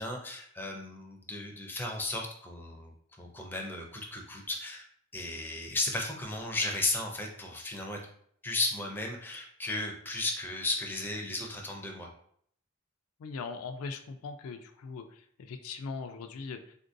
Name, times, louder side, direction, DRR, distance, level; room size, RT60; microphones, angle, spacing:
voice 1, 0.0-2.9 3.2-4.9 5.1-8.0 8.4-12.1, left 2 dB, 10° left, 1 dB, 0.4 m, -35 dB
voice 2, 13.2-16.8, left 4 dB, 80° left, 7 dB, 0.3 m, -40 dB
3.7 x 2.5 x 2.6 m, 0.64 s
head